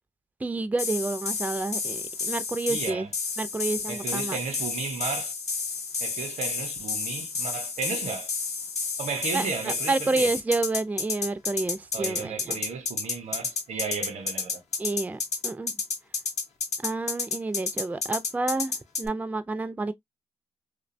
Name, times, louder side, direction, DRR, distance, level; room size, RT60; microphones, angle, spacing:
voice 1, 0.4-3.1 3.4-4.4 9.3-12.6 14.8-15.7 16.8-19.9, right 3 dB, 15° right, 0.3 m, -29 dB
sound 1, 0.8-19.1, left 4 dB, 70° left, 0.7 m, -31 dB
voice 2, 2.7-3.1 3.9-5.3 6.0-8.3 9.0-10.3 11.9-14.6, right 5 dB, 75° right, 0.7 m, -34 dB
2.6 x 2.2 x 2.5 m
cardioid pair, 60°, 12 cm